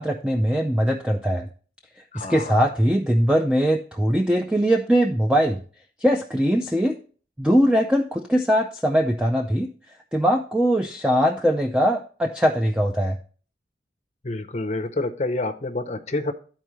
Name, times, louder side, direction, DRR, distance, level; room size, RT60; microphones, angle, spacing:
voice 1, 0.0-1.5 2.1-5.6 6.0-7.0 7.4-9.7 10.1-13.2, equal, 5° right, 3 dB, 0.4 m, -21 dB
voice 2, 2.1-2.6 14.2-16.3, left 2 dB, 35° left, 9 dB, 0.6 m, -28 dB
12.5 x 4.4 x 3.1 m, 0.42 s
head